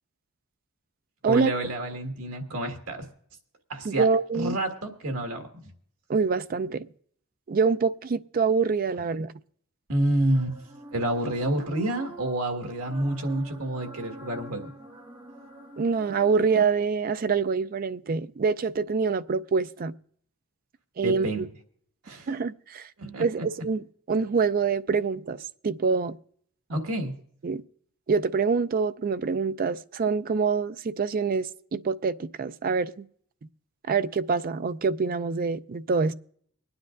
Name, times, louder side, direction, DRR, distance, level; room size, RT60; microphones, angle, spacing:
voice 1, 1.2-3.1 3.7-4.1 4.3-5.6 9.9-10.5 10.9-14.7 21.0-21.4 22.0-22.3 23.0-23.4 26.7-27.1, right 1 dB, 80° right, 1.7 m, -28 dB
voice 2, 3.8-4.6 6.1-6.9 7.5-9.3 15.8-19.9 21.0-21.5 22.3-22.9 23.2-26.2 27.4-27.6 28.1-33.0 33.9-36.1, right 5 dB, 40° right, 0.4 m, -25 dB
sound 1, 10.3-16.6, right 1 dB, 20° right, 1.3 m, -46 dB
24.5 x 9.6 x 2.5 m
head